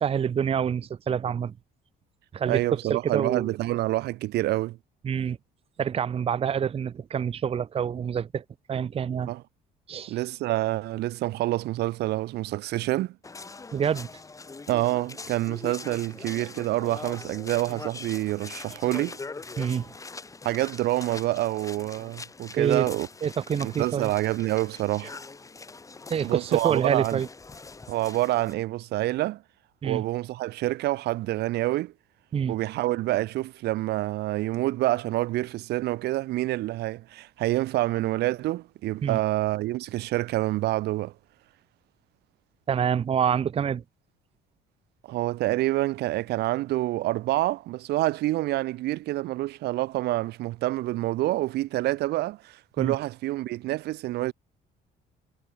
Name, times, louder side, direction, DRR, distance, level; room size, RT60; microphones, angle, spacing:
voice 1, 0.0-1.5 2.3-3.5 5.0-5.4 5.8-9.3 9.9-10.2 13.7-14.1 19.6-19.9 22.6-22.9 23.2-24.1 26.1-27.3 29.8-30.0 32.3-32.6 39.0-39.2 42.7-43.8 52.8-52.9, right 8 dB, 35° right, 0.8 m, -27 dB
voice 2, 2.5-4.8 9.3-9.4 10.1-13.2 14.7-19.2 20.4-23.1 23.6-25.1 26.2-27.2 27.9-29.4 29.8-31.9 32.5-41.1 45.1-54.3, right 17 dB, 75° right, 1.1 m, -27 dB
sound 1, 13.2-28.5, left 3 dB, 20° left, 1.6 m, -42 dB
cardioid pair, 110°, 17 cm